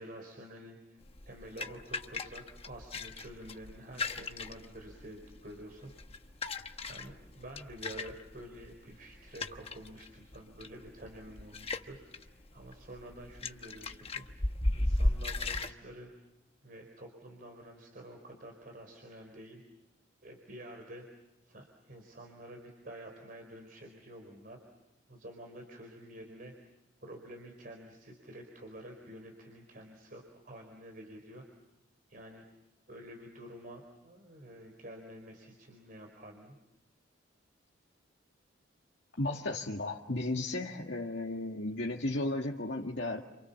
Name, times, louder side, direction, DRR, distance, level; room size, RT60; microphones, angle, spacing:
voice 1, 0.0-5.9 6.8-16.1 16.6-19.6 20.2-21.1 21.4-24.6 25.1-26.5 27.0-31.4 32.1-32.4 32.9-36.6, right 1 dB, 45° right, 3 dB, 4.4 m, -49 dB
sound 1, 1.0-15.7, left 2 dB, 30° left, 1.1 m, -37 dB
voice 2, 39.2-43.2, left 2 dB, 65° left, 0 dB, 2.0 m, -34 dB
30.0 x 28.0 x 7.2 m, 0.96 s
head